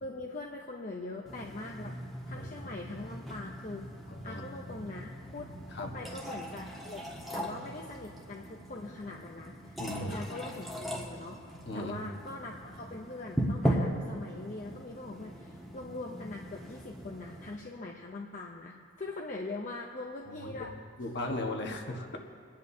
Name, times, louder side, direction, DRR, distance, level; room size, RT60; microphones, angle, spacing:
voice 1, 0.0-1.9 2.2-3.9 4.2-5.5 5.8-20.7, left 2 dB, 40° left, 0 dB, 0.7 m, -42 dB
sound 1, 1.3-17.6, equal, ahead, 1.4 m, -38 dB
voice 2, 2.3-2.7 4.1-4.4 5.7-6.0 9.8-10.3 11.6-12.0 20.3-20.6 21.0-22.2, left 1 dB, 55° left, 2 dB, 1.4 m, -37 dB
27.0 x 10.5 x 2.8 m, 2.5 s
head